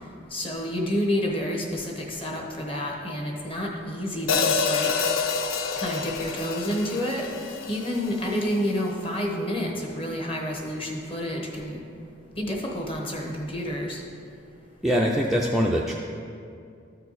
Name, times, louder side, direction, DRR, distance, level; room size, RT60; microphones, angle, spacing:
voice 1, 0.3-4.9 5.8-7.3 7.7-11.8 12.4-14.0, equal, 25° left, 0 dB, 1.0 m, -29 dB
Hi-hat, 4.3-8.5, left 5 dB, 80° left, 0.5 m, -27 dB
voice 2, 14.8-15.9, equal, ahead, -3 dB, 0.3 m, -23 dB
13.0 x 4.5 x 4.0 m, 2.4 s
head